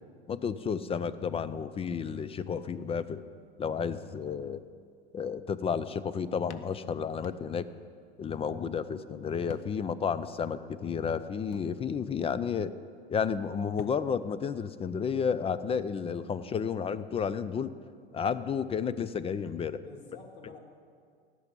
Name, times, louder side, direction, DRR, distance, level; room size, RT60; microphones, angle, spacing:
voice 1, 0.3-3.2 3.6-4.6 5.1-7.7 8.2-12.7 13.1-17.7 18.1-19.8, left 6 dB, 20° left, 14 dB, 0.5 m, -32 dB
sound 1, 6.5-7.9 8.2-8.3 9.5-10.0 10.4-10.5 11.5-12.3 13.4-13.5 13.8-14.4, left 11 dB, 50° left, 0.7 m, -49 dB
voice 2, 19.8-20.6, left 3 dB, 80° left, 3 dB, 2.3 m, -48 dB
16.5 x 6.1 x 8.4 m, 2.1 s
hypercardioid pair, 100°, 32 cm